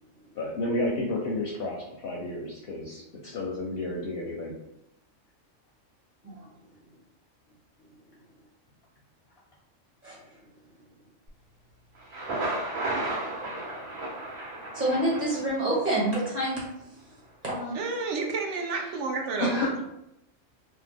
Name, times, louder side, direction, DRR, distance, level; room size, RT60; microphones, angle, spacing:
voice 1, 0.3-4.5 19.4-19.8, left 1 dB, 65° left, -3 dB, 0.6 m, -31 dB
Thunder, 12.0-15.9, right 2 dB, 90° right, 1.3 m, -33 dB
voice 2, 14.7-16.6 17.4-17.7, right 1 dB, 35° right, -6 dB, 1.2 m, -27 dB
voice 3, 17.7-19.5, right 4 dB, 70° right, 2 dB, 0.9 m, -30 dB
2.7 x 2.1 x 3.4 m, 0.82 s
omnidirectional pair, 1.3 m